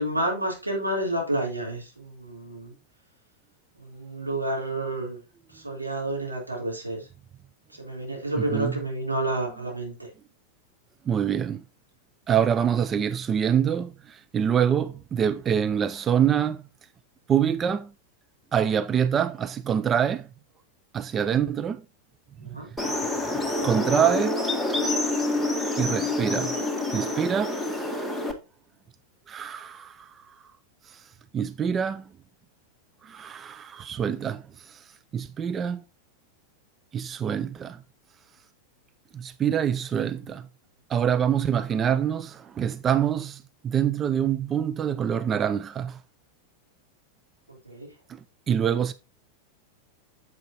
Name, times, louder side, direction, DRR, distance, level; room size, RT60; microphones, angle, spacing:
voice 1, 0.0-2.7 3.8-5.2 5.5-7.1 7.7-10.1 22.4-22.7 47.5-47.9, right 1 dB, 80° right, 3.7 m, -30 dB
voice 2, 8.4-8.7 11.1-11.6 12.3-16.7 17.3-17.9 18.5-20.3 20.9-21.8 22.4-22.5 23.3-24.4 25.8-26.5 26.9-28.0 29.3-30.4 30.8-32.1 33.0-35.8 36.9-37.8 39.1-40.5 40.9-46.0 48.1-48.9, right 8 dB, 25° right, 0.4 m, -26 dB
sound 1, 22.8-28.3, left 2 dB, ahead, 1.5 m, -27 dB
9.0 x 7.5 x 2.9 m
figure-of-eight pair, 90°, 0 cm